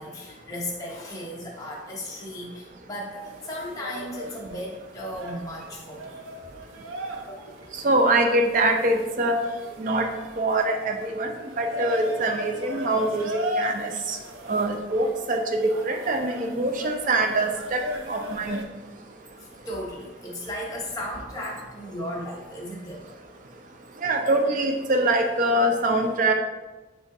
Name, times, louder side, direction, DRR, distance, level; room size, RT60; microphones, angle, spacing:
voice 1, 0.0-6.2 19.4-23.1, left 1 dB, 15° left, -3 dB, 0.7 m, -35 dB
sound 1, 3.2-18.6, equal, 90° right, 0.6 m, -38 dB
voice 2, 7.8-9.4 9.8-10.1 10.4-11.3 11.6-13.2 13.6-14.2 14.5-15.4 15.8-17.8 18.1-18.6 24.0-26.3, right 2 dB, 40° right, 4 dB, 0.4 m, -23 dB
5.2 x 3.7 x 2.6 m, 1.2 s
head